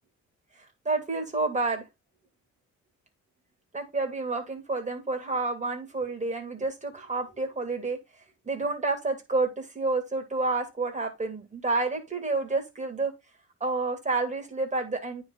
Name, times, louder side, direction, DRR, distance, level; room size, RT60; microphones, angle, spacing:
voice 1, 0.8-1.8 3.7-8.0 8.4-13.1 13.6-15.2, right 3 dB, 25° right, 3 dB, 2.9 m, -29 dB
9.5 x 4.1 x 4.1 m, 0.23 s
cardioid pair, 90°, 30 cm